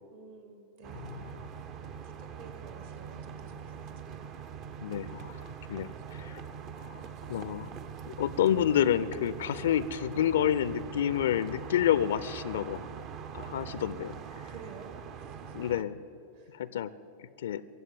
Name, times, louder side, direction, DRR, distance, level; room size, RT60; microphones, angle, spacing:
voice 1, 0.1-1.3 2.0-4.1 7.3-7.4 13.3-13.5 14.4-15.7 16.3-16.6, right 4 dB, 60° right, 5 dB, 2.2 m, -51 dB
sound 1, 0.8-15.8, right 7 dB, 35° right, 0.7 m, -43 dB
voice 2, 0.9-1.5 4.8-6.4 6.8-7.0 7.3-7.7 8.1-12.9 13.3-14.2 15.5-16.0 16.5-16.9 17.2-17.6, left 10 dB, 60° left, 16 dB, 0.4 m, -29 dB
23.0 x 7.7 x 7.8 m, 2.9 s
figure-of-eight pair, 90°, 0 cm